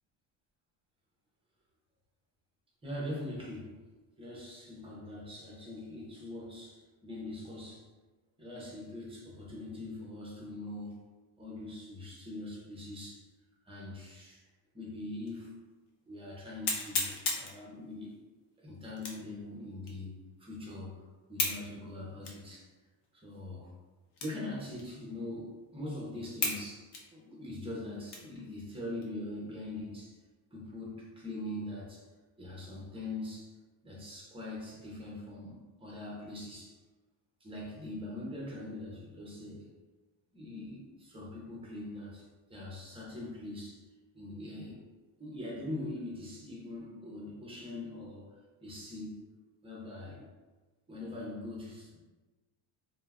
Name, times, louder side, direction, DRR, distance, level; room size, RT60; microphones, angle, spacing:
voice 1, 2.8-3.8 4.2-7.9 8.4-11.0 11.4-13.3 13.6-14.4 14.7-15.5 16.1-18.1 18.6-21.0 21.3-22.7 23.1-23.7 24.2-30.2 30.5-32.1 32.4-33.5 33.8-36.8 37.4-39.7 40.3-43.8 44.1-44.8 45.2-49.2 49.6-50.3 50.9-52.0, left 1 dB, 15° right, -4 dB, 0.4 m, -42 dB
sound 1, 15.3-15.4 15.9-16.0 16.6-17.6 19.0-19.3 19.9-20.0 21.4-21.6 22.2-22.4 23.0-23.1 24.1-24.5 24.8-24.9 25.5-25.6 26.4-26.6 26.9-28.4 28.9-29.1 29.6-30.0, left 4 dB, 55° left, 0.6 m, -34 dB
2.2 x 2.0 x 3.3 m, 1.3 s
cardioid pair, 150°, 48 cm